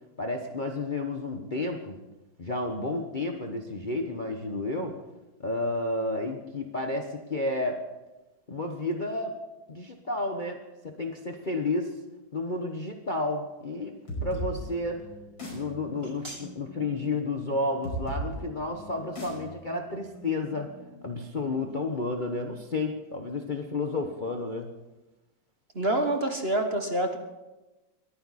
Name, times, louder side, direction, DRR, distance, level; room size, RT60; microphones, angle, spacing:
voice 1, 0.2-1.9 2.4-5.0 5.4-7.8 8.5-9.3 9.7-11.9 12.3-13.9 14.2-15.0 15.5-20.7 21.0-24.7, left 2 dB, 30° left, 3 dB, 1.0 m, -31 dB
sound 1, 14.1-21.5, right 1 dB, 85° left, 6.5 m, -39 dB
voice 2, 25.7-27.2, right 1 dB, 35° right, 5 dB, 1.4 m, -27 dB
21.5 x 14.5 x 4.2 m, 1.1 s
omnidirectional pair, 2.1 m